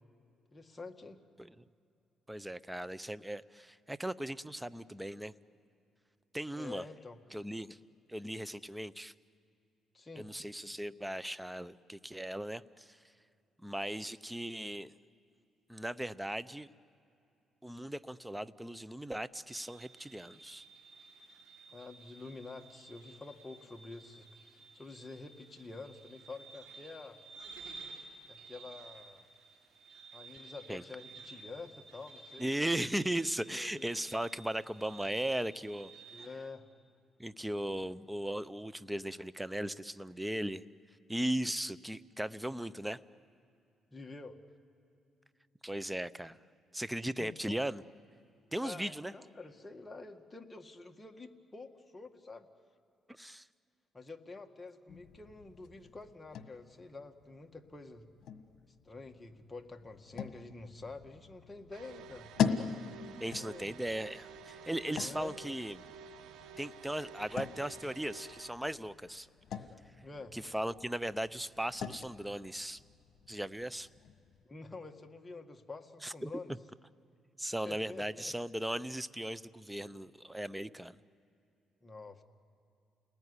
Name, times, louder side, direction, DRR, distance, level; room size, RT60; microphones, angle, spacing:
voice 1, 0.5-1.2 6.5-7.2 9.9-10.3 21.7-27.2 28.3-29.2 30.1-32.7 33.5-33.9 36.1-36.6 43.9-44.4 47.2-47.7 48.6-52.5 53.9-58.1 58.8-62.3 63.3-63.7 65.0-65.4 70.0-70.4 74.4-76.5 77.6-78.3 81.8-82.2, left 3 dB, 20° left, 4 dB, 1.9 m, -48 dB
voice 2, 2.3-5.3 6.3-6.8 7.3-7.8 8.1-9.1 10.2-13.0 13.6-14.9 15.7-16.7 17.6-20.6 30.7-30.8 32.4-35.9 36.2-36.3 37.2-40.6 41.1-43.0 45.6-46.4 46.7-47.8 48.5-49.1 53.1-53.5 63.2-65.8 66.6-69.3 70.3-72.8 73.3-73.9 76.0-76.3 77.4-81.0, right 1 dB, 5° right, 16 dB, 0.7 m, -37 dB
sound 1, 19.5-36.3, right 4 dB, 70° right, 7.2 m, -54 dB
sound 2, 54.9-74.4, left 7 dB, 65° left, 1.6 m, -42 dB
sound 3, 61.7-68.5, right 5 dB, 90° right, 1.5 m, -51 dB
29.5 x 20.0 x 9.8 m, 2.6 s
cardioid pair, 90°, 0 cm